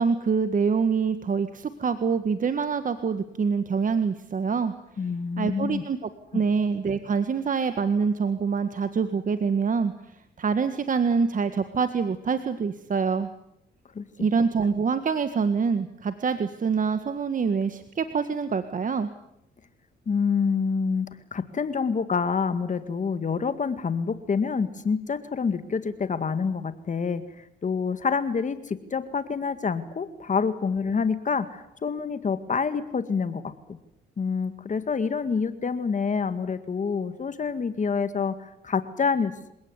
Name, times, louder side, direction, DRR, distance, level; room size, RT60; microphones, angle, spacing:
voice 1, 0.0-4.7 5.4-9.9 10.4-13.3 14.2-19.1, right 5 dB, 40° right, 10 dB, 1.7 m, -25 dB
voice 2, 5.0-5.8 6.3-6.4 14.0-14.1 20.1-33.8 34.2-39.5, left 5 dB, 40° left, 11 dB, 2.0 m, -27 dB
27.5 x 17.5 x 9.6 m, 0.80 s
cardioid pair, 90°, 20 cm